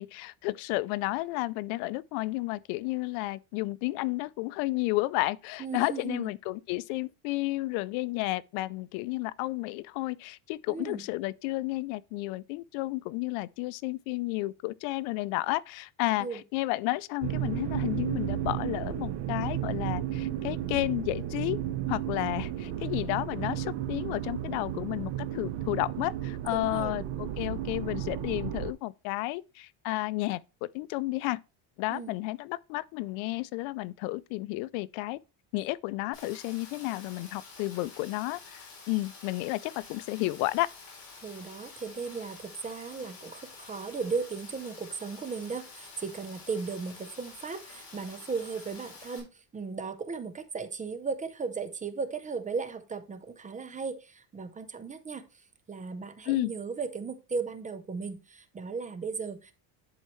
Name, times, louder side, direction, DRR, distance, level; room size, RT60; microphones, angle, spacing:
voice 1, 0.0-21.6 21.9-31.4 31.8-35.2 35.5-40.7 56.3-56.5, left 19 dB, 90° left, 0.5 m, -32 dB
voice 2, 5.6-6.3 10.7-11.0 16.2-16.4 26.5-26.9 31.9-32.1 41.2-55.2 55.7-59.5, right 5 dB, 15° right, 0.5 m, -36 dB
sound 1, 17.2-28.7, right 12 dB, 60° right, 0.9 m, -33 dB
Rain, 36.1-49.2, left 4 dB, 45° left, 3.7 m, -49 dB
10.5 x 4.6 x 3.1 m
cardioid pair, 155°, 47 cm